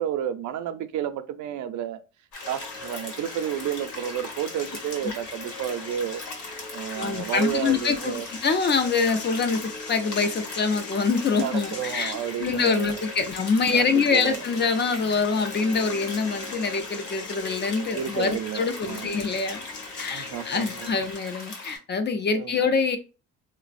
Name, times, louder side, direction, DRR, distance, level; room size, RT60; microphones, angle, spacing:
voice 1, 0.0-2.0 2.5-6.2 6.7-8.3 11.4-13.0 13.7-14.4 17.9-19.2 20.1-20.9 22.4-22.7, right 10 dB, 70° right, 0.4 m, -31 dB
sound 1, 2.3-21.8, left 3 dB, 80° left, 1.0 m, -40 dB
sound 2, 2.4-20.9, left 4 dB, 50° left, 0.8 m, -41 dB
voice 2, 7.0-8.1 8.4-19.6 20.0-23.0, left 5 dB, 35° left, 0.4 m, -25 dB
3.2 x 2.0 x 2.4 m
cardioid pair, 90°, 30 cm